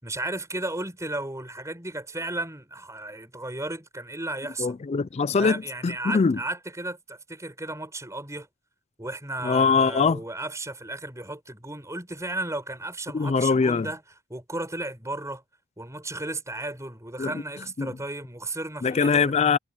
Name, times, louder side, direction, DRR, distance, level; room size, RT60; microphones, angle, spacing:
voice 1, 0.0-4.8 5.4-8.5 9.0-14.0 14.3-15.4 15.8-19.4, right 2 dB, 15° right, 7.4 m, -34 dB
voice 2, 4.6-6.4 9.4-10.2 13.1-13.9 17.2-17.3 17.8-17.9 18.8-19.6, left 5 dB, 30° left, 0.3 m, -22 dB
head